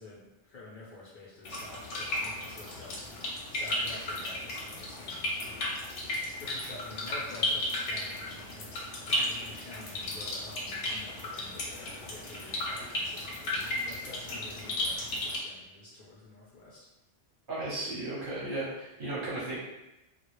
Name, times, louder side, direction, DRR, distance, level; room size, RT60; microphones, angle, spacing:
voice 1, 0.0-3.1 3.5-6.1 6.4-16.9, left 2 dB, 60° left, -7 dB, 0.6 m, -49 dB
sound 1, 1.4-15.4, left 1 dB, 80° left, 0.9 m, -34 dB
voice 2, 17.5-19.6, right 2 dB, 50° right, -7 dB, 0.8 m, -35 dB
2.2 x 2.0 x 2.9 m, 0.97 s
omnidirectional pair, 1.2 m